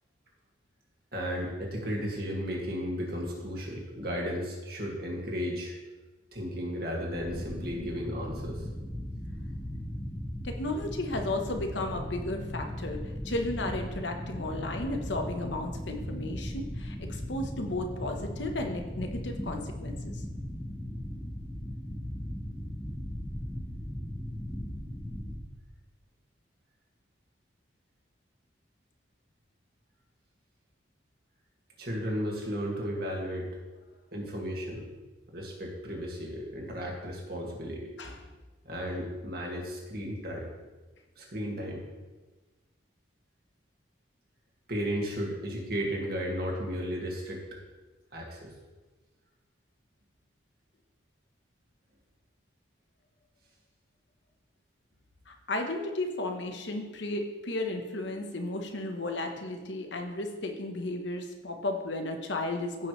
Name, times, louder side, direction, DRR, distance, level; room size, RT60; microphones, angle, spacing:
voice 1, 1.1-5.7 6.3-8.6 31.8-33.5 34.1-34.9 35.3-37.9 38.6-40.5 41.2-41.8 44.7-47.4 48.1-48.5, equal, 50° right, -1 dB, 2.1 m, -34 dB
sound 1, 7.1-25.4, equal, 10° left, 1.0 m, -38 dB
voice 2, 10.4-20.2 38.0-38.2 55.3-62.9, left 2 dB, 70° left, 4 dB, 1.1 m, -34 dB
15.0 x 6.0 x 3.2 m, 1.2 s
head